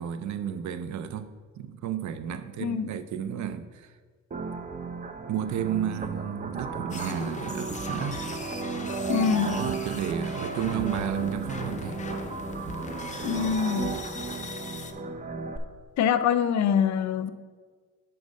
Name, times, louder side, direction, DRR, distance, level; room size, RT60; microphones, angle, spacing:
voice 1, 0.0-3.9 5.3-8.2 9.4-12.0, right 9 dB, 70° right, 0.5 m, -32 dB
voice 2, 2.6-2.9 9.1-9.6 13.2-14.0 16.0-17.3, left 8 dB, 65° left, 0.5 m, -24 dB
sound 1, 4.3-15.6, right 4 dB, 25° right, 0.6 m, -34 dB
sound 2, 6.9-14.9, left 4 dB, 25° left, 0.6 m, -40 dB
6.2 x 4.6 x 6.4 m
cardioid pair, 90°, 30 cm